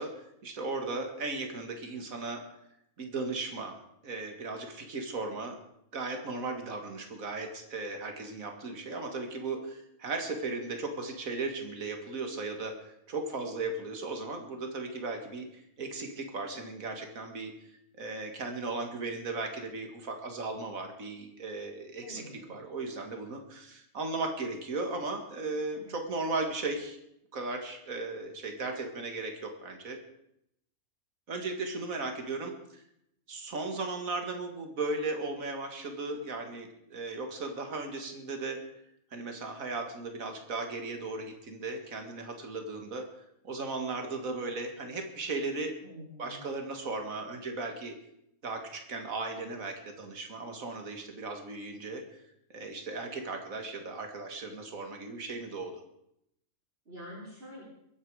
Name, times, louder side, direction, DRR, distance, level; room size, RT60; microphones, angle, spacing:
voice 1, 0.0-2.4 3.0-3.8 4.0-5.6 5.9-17.5 18.0-22.2 22.5-27.0 27.3-30.0 31.3-32.8 33.3-38.6 39.1-43.0 43.4-45.7 46.2-47.9 48.4-52.2 52.5-55.8, right 3 dB, 70° right, 4 dB, 2.4 m, -36 dB
voice 2, 22.0-22.6 25.7-25.9 45.8-46.6 56.9-57.6, equal, 45° right, -7 dB, 4.3 m, -47 dB
23.0 x 9.8 x 4.9 m, 0.78 s
omnidirectional pair, 1.5 m